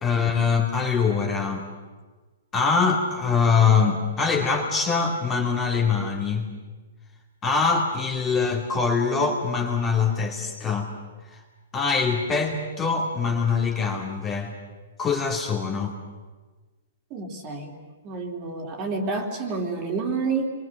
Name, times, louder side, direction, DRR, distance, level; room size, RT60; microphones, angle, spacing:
voice 1, 0.0-1.7 2.5-6.5 7.4-10.9 11.3-11.4 11.7-14.5 15.0-15.9, left 5 dB, 15° left, 1 dB, 2.4 m, -23 dB
voice 2, 17.1-17.7 18.0-20.5, right 4 dB, 25° right, 3 dB, 3.2 m, -29 dB
30.0 x 23.0 x 6.6 m, 1.3 s
hypercardioid pair, 165°, 0 cm